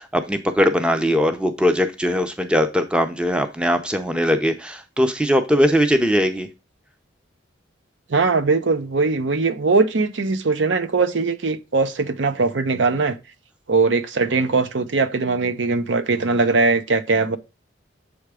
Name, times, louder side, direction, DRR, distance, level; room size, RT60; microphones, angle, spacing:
voice 1, 0.0-6.5, equal, 5° right, 0.5 m, -20 dB
voice 2, 8.1-13.2 13.7-17.4, right 3 dB, 70° right, 0.6 m, -20 dB
7.5 x 3.5 x 4.8 m
head